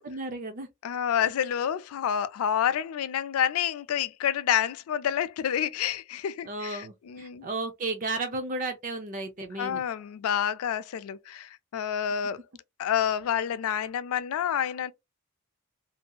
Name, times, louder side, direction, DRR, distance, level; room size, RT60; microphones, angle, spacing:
voice 1, 0.0-0.7 6.4-9.8, right 2 dB, 35° right, 0.4 m, -33 dB
voice 2, 0.8-7.5 9.6-12.4 12.8-14.9, left 9 dB, 80° left, 0.3 m, -28 dB
2.7 x 2.6 x 2.2 m
head